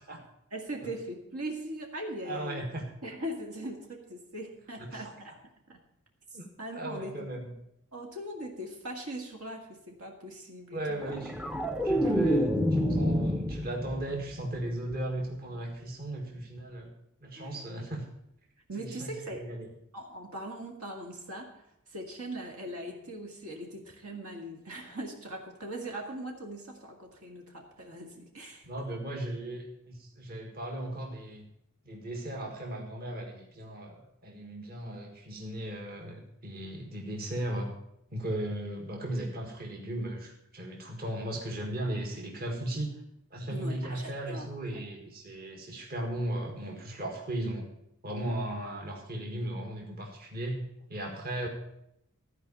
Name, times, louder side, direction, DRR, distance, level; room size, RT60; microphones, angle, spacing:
voice 1, 0.5-2.6 3.0-5.3 5.7-5.8 6.6-7.3 7.9-11.2 12.0-12.3 17.4-17.7 18.7-19.4 19.9-28.7 43.5-44.5 44.7-44.9, right 1 dB, 75° right, 1 dB, 2.1 m, -40 dB
voice 2, 2.2-2.9 4.8-5.3 6.3-6.5 6.7-7.5 10.7-11.4 11.8-16.9 17.2-18.1 18.8-19.7 28.6-31.5 31.8-37.7 38.1-42.9 43.3-47.7 48.0-50.6 50.9-51.5, right 1 dB, 45° right, 1 dB, 1.7 m, -36 dB
sound 1, 11.0-14.2 14.5-14.9, equal, 5° right, 0.5 m, -28 dB
14.0 x 4.9 x 8.4 m, 0.79 s
head